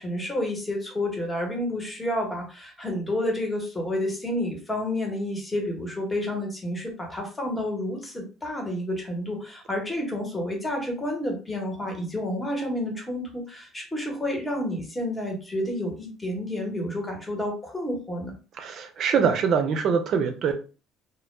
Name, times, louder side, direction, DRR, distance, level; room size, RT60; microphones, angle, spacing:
voice 1, 0.0-18.3, left 1 dB, 15° left, 1 dB, 1.0 m, -30 dB
voice 2, 18.6-20.5, right 6 dB, 55° right, 6 dB, 0.5 m, -23 dB
2.1 x 2.1 x 3.1 m, 0.35 s
cardioid pair, 105°, 0 cm